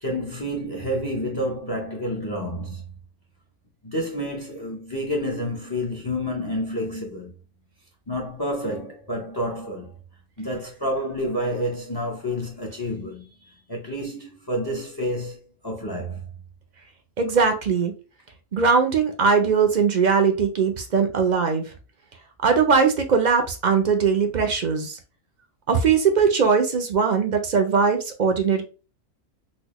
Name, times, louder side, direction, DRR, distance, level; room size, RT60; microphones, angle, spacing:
voice 1, 0.0-2.8 3.8-7.3 8.1-9.9 10.4-16.3, equal, 25° left, 0.5 m, -29 dB
voice 2, 17.2-17.9 18.5-21.7 22.4-25.0 25.7-28.6, right 5 dB, 55° right, 0.5 m, -20 dB
4.1 x 2.1 x 2.9 m
omnidirectional pair, 1.3 m